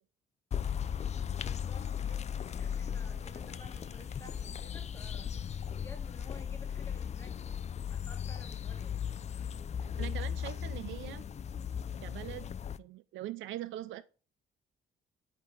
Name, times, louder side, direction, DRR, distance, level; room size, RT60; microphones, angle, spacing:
sound 1, 0.5-12.8, left 8 dB, 35° left, 0.4 m, -37 dB
sound 2, 0.6-6.4, right 4 dB, 35° right, 2.9 m, -64 dB
voice 1, 1.4-7.3 7.8-9.0, left 2 dB, 15° left, 1.5 m, -54 dB
voice 2, 10.0-11.2 12.0-12.5 12.8-14.0, right 14 dB, 80° right, 0.4 m, -42 dB
8.3 x 3.8 x 4.7 m
cardioid pair, 90°, 20 cm